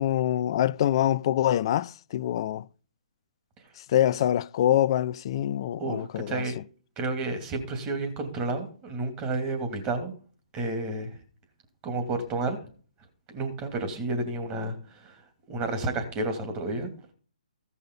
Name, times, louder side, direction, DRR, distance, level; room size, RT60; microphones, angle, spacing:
voice 1, 0.0-2.7 3.8-6.6, left 11 dB, 40° left, 0.4 m, -25 dB
voice 2, 5.8-6.6 7.0-10.1 10.5-11.2 11.8-12.6 13.3-15.2 15.5-16.9, right 2 dB, 20° right, 2.7 m, -31 dB
15.5 x 5.6 x 5.5 m
figure-of-eight pair, 135°, 4 cm